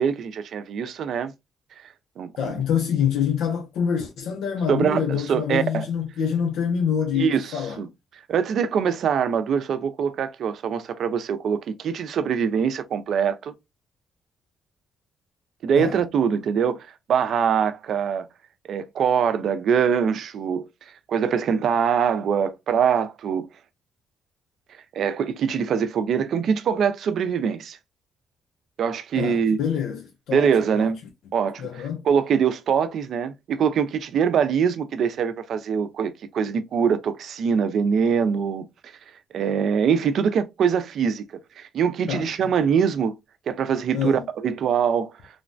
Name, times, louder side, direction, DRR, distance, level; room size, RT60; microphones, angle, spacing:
voice 1, 0.0-1.3 2.2-2.5 4.7-5.9 7.1-7.5 7.8-7.9 8.3-13.5 15.6-18.2 18.7-20.7 21.1-23.5 24.9-27.8 28.8-29.6 30.3-31.0 31.3-31.6 32.0-38.6 39.3-41.3 41.6-43.2 43.5-45.1, right 7 dB, 65° right, 0.4 m, -23 dB
voice 2, 2.4-7.8 15.8-16.0 29.2-30.9 31.6-32.0 42.1-42.3 43.9-44.3, left 8 dB, 85° left, 0.5 m, -26 dB
3.1 x 2.1 x 2.5 m
cardioid pair, 90°, 0 cm